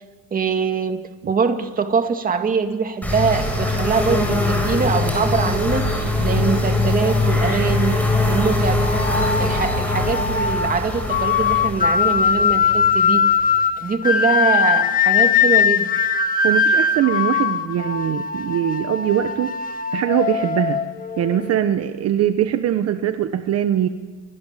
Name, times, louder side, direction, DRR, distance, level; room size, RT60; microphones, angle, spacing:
voice 1, 0.3-8.8 9.4-13.3 13.8-15.9, right 5 dB, 30° right, 6 dB, 2.3 m, -23 dB
sound 1, 3.0-13.6, left 2 dB, 5° left, 7.4 m, -22 dB
sound 2, 8.8-21.6, left 6 dB, 30° left, 1.8 m, -20 dB
voice 2, 16.4-19.5 19.9-20.8 21.2-23.9, right 10 dB, 60° right, 8 dB, 1.3 m, -21 dB
29.5 x 24.5 x 7.6 m, 1.3 s
cardioid pair, 155°, 29 cm